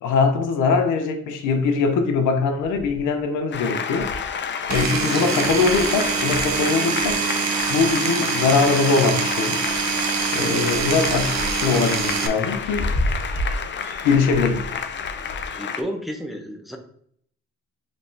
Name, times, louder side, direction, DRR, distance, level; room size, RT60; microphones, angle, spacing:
voice 1, 0.0-4.1 4.7-7.2 7.7-9.6 10.3-11.3 11.6-12.9 14.0-14.7, left 4 dB, 85° left, 0.7 m, -21 dB
sound 1, 2.6-3.2 3.6-3.7 3.9-7.9 8.5-9.3 9.6-15.5, equal, 30° right, 1.0 m, -33 dB
Applause, 3.5-15.8, left 7 dB, 40° left, 0.5 m, -30 dB
Power tool, 4.7-12.3, right 6 dB, 65° right, 0.7 m, -25 dB
voice 2, 5.0-5.5 11.1-11.5 15.5-16.8, equal, ahead, 0.7 m, -32 dB
5.2 x 3.1 x 2.7 m
cardioid pair, 90°, 30 cm